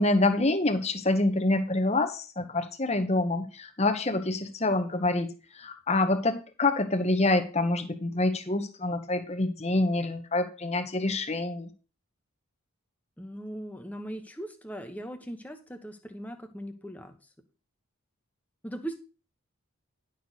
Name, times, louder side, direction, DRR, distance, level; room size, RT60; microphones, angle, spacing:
voice 1, 0.0-11.7, left 2 dB, 30° left, 8 dB, 1.0 m, -26 dB
voice 2, 13.2-17.1 18.6-19.0, right 1 dB, 5° left, 5 dB, 1.0 m, -39 dB
11.0 x 6.5 x 4.1 m, 0.35 s
head